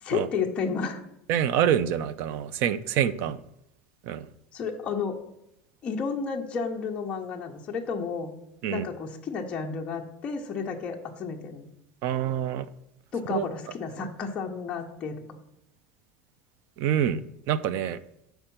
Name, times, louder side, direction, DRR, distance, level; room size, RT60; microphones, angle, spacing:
voice 1, 0.0-1.0 4.5-5.2 5.8-8.3 8.7-11.7 13.1-15.4, left 5 dB, 20° left, 1 dB, 0.7 m, -32 dB
voice 2, 1.3-3.4 4.0-4.3 8.6-8.9 12.0-12.7 13.3-13.4 16.8-17.2 17.5-18.0, right 9 dB, 45° right, 16 dB, 0.4 m, -26 dB
6.4 x 4.5 x 5.8 m, 0.82 s
cardioid pair, 180°, 5 cm